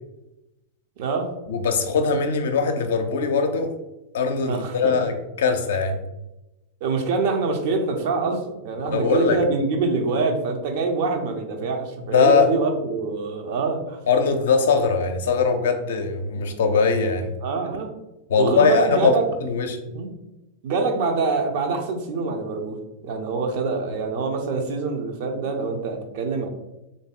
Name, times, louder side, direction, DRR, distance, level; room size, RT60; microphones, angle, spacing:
voice 1, 1.0-1.3 4.5-5.0 6.8-14.0 16.4-16.5 17.4-17.9 18.4-19.3 19.8-20.1 20.6-22.8 23.0-26.5, right 4 dB, 50° right, 4 dB, 0.6 m, -25 dB
voice 2, 1.5-3.7 4.1-6.0 8.9-9.4 12.1-12.5 14.1-17.3 18.3-19.1 19.4-19.8, left 5 dB, 60° left, 6 dB, 0.5 m, -21 dB
3.4 x 2.6 x 3.8 m, 0.96 s
figure-of-eight pair, 90°, 0 cm